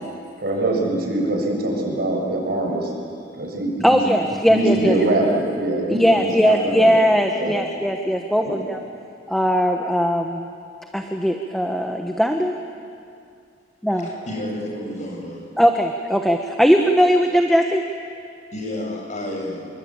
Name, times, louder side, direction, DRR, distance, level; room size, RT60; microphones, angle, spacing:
voice 1, 0.4-2.9 3.3-4.0 4.5-6.9 7.3-7.5 8.4-8.6, right 1 dB, 55° right, -1 dB, 7.3 m, -23 dB
voice 2, 3.8-4.9 6.0-8.8 9.3-10.5 10.9-12.6 13.8-14.1 15.6-17.8, equal, ahead, 3 dB, 1.2 m, -19 dB
voice 3, 13.9-15.4 18.5-19.7, left 1 dB, 40° left, 1 dB, 6.9 m, -30 dB
27.5 x 23.0 x 9.0 m, 2.4 s
head